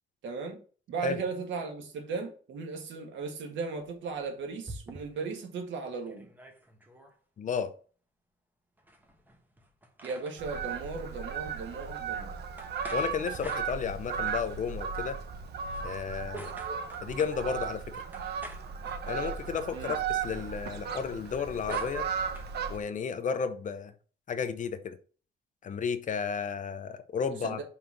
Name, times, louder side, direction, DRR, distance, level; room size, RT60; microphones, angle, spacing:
voice 1, 0.2-0.6 0.9-6.3 10.0-12.3 19.7-19.9 27.3-27.6, right 4 dB, 90° right, 1.7 m, -37 dB
sound 1, 3.8-5.4 5.8-5.9 6.1-7.2 8.8-10.7 12.6-14.3 15.6-17.4 18.1-19.5 21.0-22.5, right 2 dB, 10° right, 1.1 m, -48 dB
voice 2, 7.4-7.7 12.9-15.2 15.8-16.5 17.0-17.8 19.1-22.1 22.7-23.9 24.3-25.0 25.6-27.6, left 6 dB, 45° left, 0.7 m, -33 dB
Fowl, 10.4-22.8, right 6 dB, 60° right, 1.0 m, -36 dB
5.6 x 3.9 x 5.9 m
cardioid pair, 145°, 19 cm